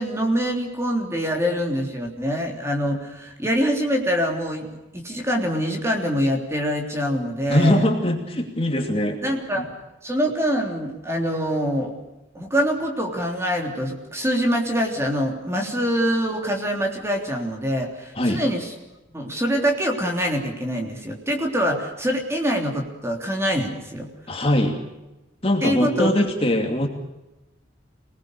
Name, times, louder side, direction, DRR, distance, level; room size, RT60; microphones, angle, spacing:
voice 1, 0.0-4.7 4.9-7.8 9.2-9.7 10.0-11.9 12.4-18.7 19.1-24.1 25.6-26.1, equal, 15° right, 2 dB, 3.4 m, -24 dB
voice 2, 7.5-9.2 9.6-9.7 18.2-18.4 24.3-24.8 25.4-26.9, left 1 dB, 30° left, 3 dB, 2.7 m, -21 dB
26.5 x 19.5 x 6.6 m, 0.99 s
head